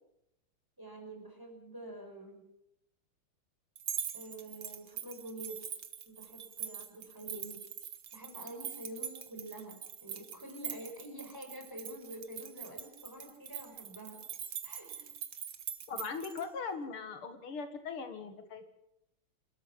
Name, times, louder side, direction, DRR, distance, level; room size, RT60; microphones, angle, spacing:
voice 1, 0.8-2.4 4.1-5.7 6.1-7.6 8.1-14.2 14.6-15.2 16.0-16.1, right 1 dB, 10° right, 3 dB, 5.5 m, -47 dB
sound 1, 3.8-16.4, right 8 dB, 65° right, 2.2 m, -43 dB
voice 2, 15.9-18.7, left 5 dB, 80° left, 8 dB, 2.7 m, -40 dB
28.0 x 13.0 x 7.5 m, 0.81 s
omnidirectional pair, 2.4 m